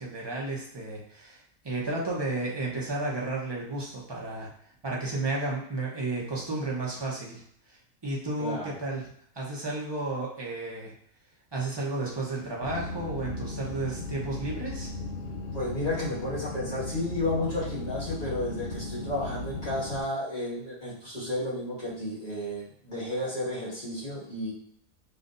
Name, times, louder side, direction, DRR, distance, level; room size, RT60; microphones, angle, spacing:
voice 1, 0.0-4.5 4.8-7.4 7.7-10.9 11.5-14.9, right 2 dB, 25° right, -4 dB, 0.7 m, -33 dB
voice 2, 8.4-8.7 15.5-24.5, left 1 dB, 30° left, -8 dB, 1.8 m, -32 dB
sound 1, 12.6-20.0, left 2 dB, 65° left, 0.6 m, -36 dB
5.4 x 2.7 x 2.6 m, 0.66 s
omnidirectional pair, 1.5 m